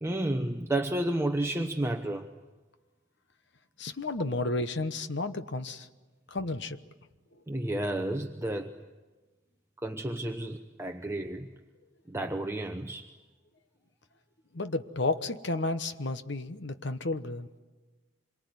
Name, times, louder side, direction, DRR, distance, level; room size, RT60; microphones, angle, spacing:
voice 1, 0.0-2.3 7.5-8.7 9.8-11.5 12.1-13.1, right 1 dB, 15° right, 4 dB, 0.9 m, -31 dB
voice 2, 3.8-5.9 6.3-6.8 14.5-17.5, left 2 dB, 55° left, 10 dB, 1.1 m, -32 dB
26.5 x 23.0 x 9.6 m, 1.3 s
head